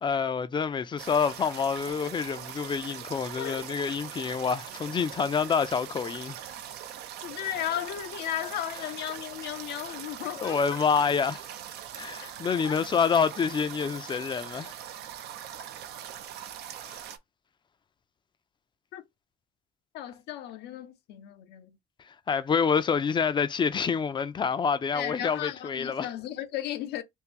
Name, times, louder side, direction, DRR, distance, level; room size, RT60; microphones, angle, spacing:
voice 1, 0.0-6.4 10.4-11.5 11.9-14.7 16.9-17.0 22.1-26.1, left 6 dB, 30° left, 0.4 m, -27 dB
sound 1, 1.0-17.2, right 10 dB, 75° right, 0.6 m, -42 dB
voice 2, 7.2-10.6 12.7-12.8 18.9-19.0 19.9-21.8 24.9-27.0, left 12 dB, 80° left, 0.6 m, -35 dB
3.6 x 2.5 x 2.9 m
cardioid pair, 110°, 17 cm